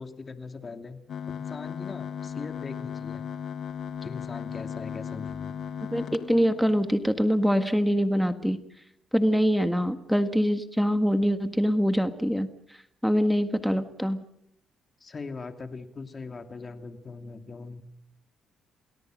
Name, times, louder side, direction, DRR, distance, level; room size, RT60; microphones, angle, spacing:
voice 1, 0.0-3.2 4.0-5.6 15.0-17.8, left 4 dB, 35° left, 7 dB, 2.6 m, -40 dB
sound 1, 1.1-7.0, left 8 dB, 65° left, 1.6 m, -36 dB
voice 2, 5.9-8.6 9.1-12.5 13.0-14.2, equal, ahead, 9 dB, 1.7 m, -24 dB
29.0 x 19.0 x 6.5 m, 0.71 s
cardioid pair, 90°, 0 cm